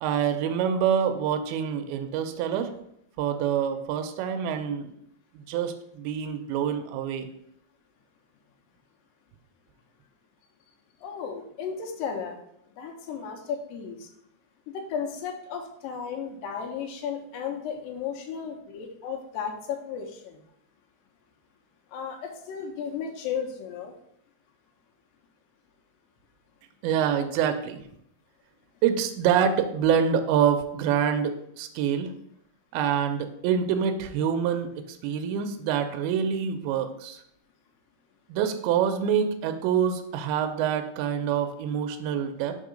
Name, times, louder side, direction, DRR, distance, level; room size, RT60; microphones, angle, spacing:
voice 1, 0.0-2.7 3.2-4.9 5.5-7.3 26.8-27.8 28.8-32.1 32.7-37.2 38.3-42.6, right 8 dB, 85° right, 6 dB, 2.4 m, -26 dB
voice 2, 11.0-12.4 12.8-14.1 14.7-20.4 21.9-23.9, left 7 dB, 75° left, 3 dB, 2.3 m, -34 dB
5.4 x 3.7 x 5.0 m, 0.73 s
omnidirectional pair, 4.5 m